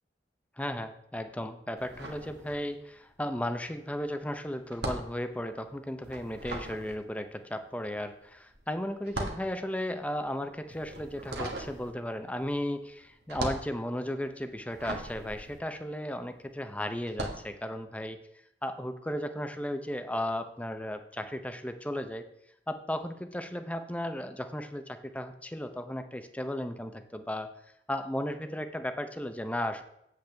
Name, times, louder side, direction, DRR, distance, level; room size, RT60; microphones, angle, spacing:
voice 1, 0.6-18.2 18.6-22.2 22.7-27.5 27.9-29.8, left 1 dB, 10° left, 8 dB, 0.6 m, -35 dB
sound 1, 1.8-3.0 3.3-16.5 17.0-17.5, right 1 dB, 70° right, 1.5 m, -40 dB
8.5 x 7.9 x 3.4 m, 0.78 s
head